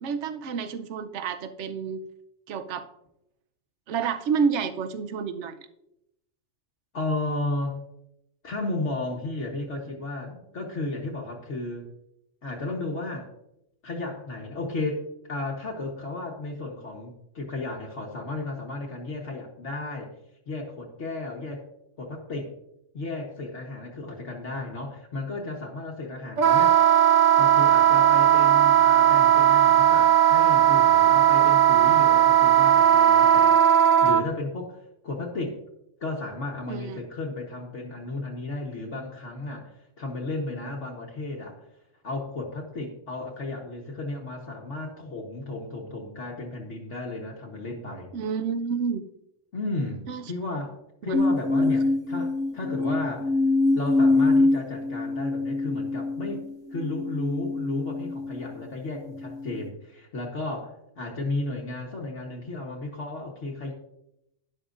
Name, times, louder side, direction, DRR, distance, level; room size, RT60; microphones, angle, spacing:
voice 1, 0.0-2.0 2.5-2.9 3.9-5.6 36.7-37.0 48.1-49.1 50.1-50.3 51.1-51.2 51.6-51.7, right 6 dB, 65° right, 9 dB, 1.0 m, -29 dB
voice 2, 6.9-7.8 8.4-11.9 12.4-13.3 13.8-20.1 20.5-21.6 22.0-22.5 22.9-26.8 27.4-33.6 34.0-35.6 36.0-41.6 42.0-48.1 49.5-53.3 53.7-56.4 56.7-63.7, left 2 dB, 65° left, -1 dB, 1.6 m, -34 dB
Wind instrument woodwind instrument, 26.4-34.2, right 10 dB, 45° right, 0.7 m, -17 dB
sound 1, 51.1-58.6 59.2-59.7, left 2 dB, 5° left, 1.6 m, -25 dB
12.0 x 11.0 x 2.5 m, 0.82 s
omnidirectional pair, 1.3 m